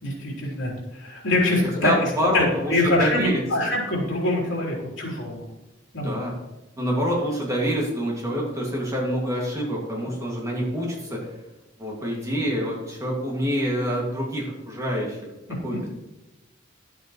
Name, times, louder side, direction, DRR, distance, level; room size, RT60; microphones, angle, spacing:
voice 1, 0.0-2.4 2.7-5.4 5.9-6.3, left 2 dB, 75° left, -3 dB, 3.5 m, -24 dB
voice 2, 1.8-3.7 6.0-6.4 6.8-11.3 11.8-15.3 15.6-15.9, equal, 15° right, -3 dB, 2.1 m, -27 dB
11.5 x 8.0 x 3.1 m, 1.0 s
head